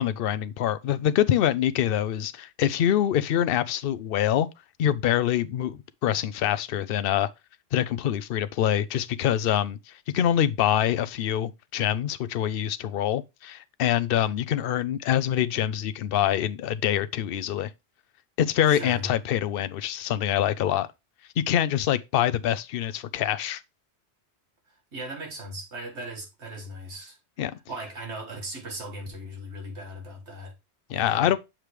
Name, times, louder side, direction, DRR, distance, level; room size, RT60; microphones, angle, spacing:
voice 1, 0.0-4.5 4.8-7.3 7.7-17.7 18.4-20.9 21.4-23.6 27.4-27.5 30.9-31.4, left 10 dB, 60° left, 0.7 m, -25 dB
voice 2, 18.7-19.1 24.9-27.2 27.7-30.5 30.9-31.3, right 1 dB, 75° right, 1.9 m, -38 dB
7.4 x 5.0 x 3.1 m
omnidirectional pair, 1.2 m